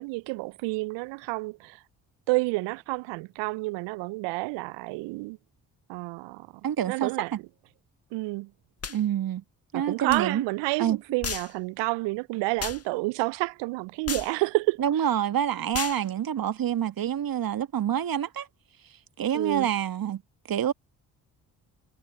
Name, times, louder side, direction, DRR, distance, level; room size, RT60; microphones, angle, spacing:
voice 1, 0.0-1.8 2.3-5.4 5.9-6.5 6.9-7.3 8.1-8.5 9.7-14.8 19.3-19.7, right 25 dB, 65° right, 0.8 m, -29 dB
voice 2, 6.6-7.4 8.9-9.4 9.7-10.4 10.8-11.0 14.8-18.5 18.8-20.2 20.5-20.7, right 10 dB, 50° right, 1.8 m, -27 dB
sound 1, 8.8-9.0 10.1-10.2 11.2-11.5 12.6-12.8 14.1-14.3 15.7-16.0, left 6 dB, 30° left, 1.6 m, -33 dB
figure-of-eight pair, 40°, 46 cm